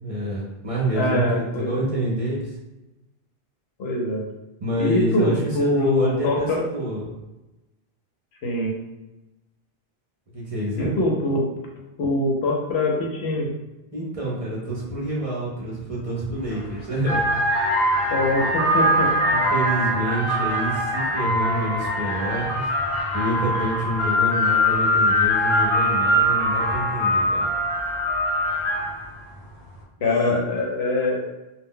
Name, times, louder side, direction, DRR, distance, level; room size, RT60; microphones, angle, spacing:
voice 1, 0.0-2.5 4.6-7.1 10.3-11.0 13.9-17.3 19.2-22.7 23.1-27.5 30.0-30.4, right 1 dB, 40° right, -5 dB, 0.6 m, -27 dB
voice 2, 0.9-1.7 3.8-4.3 4.8-6.6 8.4-8.7 10.8-11.4 12.0-13.5 18.1-19.1 30.0-31.2, left 2 dB, 85° left, -1 dB, 0.9 m, -23 dB
sound 1, 16.4-16.6 17.0-29.1, equal, 40° left, 0.5 m, -22 dB
2.2 x 2.1 x 3.6 m, 1.0 s
omnidirectional pair, 1.0 m